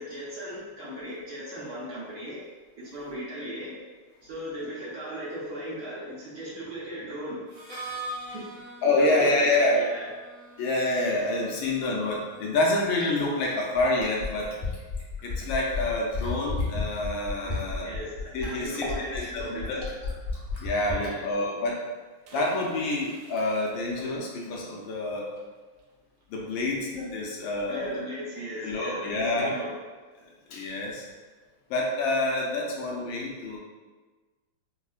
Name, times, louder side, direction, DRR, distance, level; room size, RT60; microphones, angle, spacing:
voice 1, 0.0-2.4 2.8-3.7 4.2-7.4 8.3-8.5 9.0-10.1 17.4-19.7 20.8-21.3 27.7-29.7, equal, 65° right, -8 dB, 1.1 m, -37 dB
Harmonica, 7.5-13.2, right 1 dB, 35° right, 0.9 m, -43 dB
voice 2, 8.8-9.8 10.6-14.5 15.2-17.9 18.3-18.9 19.1-19.9 20.6-21.8 22.3-25.3 26.3-28.0 28.6-29.6 30.5-31.0 31.7-33.6, left 2 dB, 75° left, -2 dB, 1.3 m, -27 dB
Fill (with liquid), 13.0-21.1 22.4-22.5, left 4 dB, 35° left, 0.6 m, -32 dB
sound 1, 22.2-27.9 28.2-28.3 28.5-28.8, right 4 dB, 80° right, 1.6 m, -49 dB
5.4 x 2.1 x 2.4 m, 1.3 s
omnidirectional pair, 2.3 m